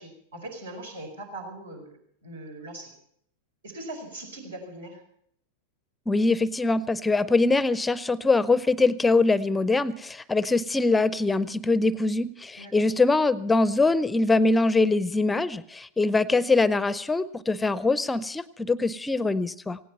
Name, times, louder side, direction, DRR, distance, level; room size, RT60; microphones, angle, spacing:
voice 1, 0.0-2.9 3.6-5.0 12.6-12.8, right 1 dB, 70° right, 2 dB, 4.9 m, -40 dB
voice 2, 6.1-19.8, left 3 dB, 10° left, 19 dB, 0.7 m, -23 dB
18.5 x 17.0 x 4.2 m, 0.68 s
figure-of-eight pair, 90°, 0 cm